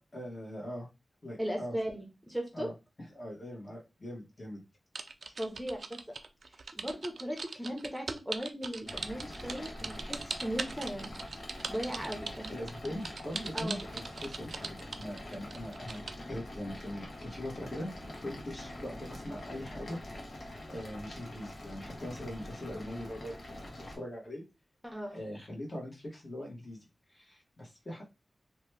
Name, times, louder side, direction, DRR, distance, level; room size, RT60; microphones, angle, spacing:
voice 1, 0.1-0.9 1.2-1.8 2.5-2.7 3.1-4.6 10.0-10.1 12.5-20.0 20.6-24.4 25.1-26.8 27.1-28.0, left 1 dB, 40° left, -1 dB, 1.2 m, -41 dB
voice 2, 1.4-2.7 5.4-6.0 6.7-11.1 11.7-12.6 13.5-13.8 24.8-25.2, equal, 5° right, 2 dB, 0.7 m, -37 dB
sound 1, 5.0-16.2, right 4 dB, 65° right, 0.3 m, -40 dB
sound 2, 8.9-24.0, left 1 dB, 65° left, 0.9 m, -45 dB
2.9 x 2.2 x 3.2 m, 0.26 s
wide cardioid pair, 85°, 0 cm